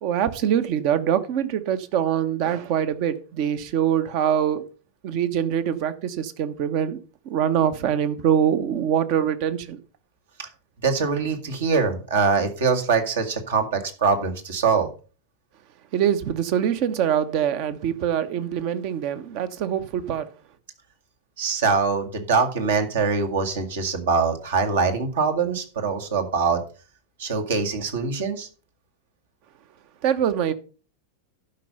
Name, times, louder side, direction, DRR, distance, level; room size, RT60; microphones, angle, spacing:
voice 1, 0.0-4.7 5.0-7.0 7.2-9.8 15.9-20.3 30.0-30.5, right 9 dB, 45° right, 1.0 m, -24 dB
voice 2, 10.8-14.9 21.4-26.6 27.2-28.5, right 5 dB, 60° right, 1.9 m, -23 dB
12.0 x 5.6 x 5.3 m
figure-of-eight pair, 90°, 0 cm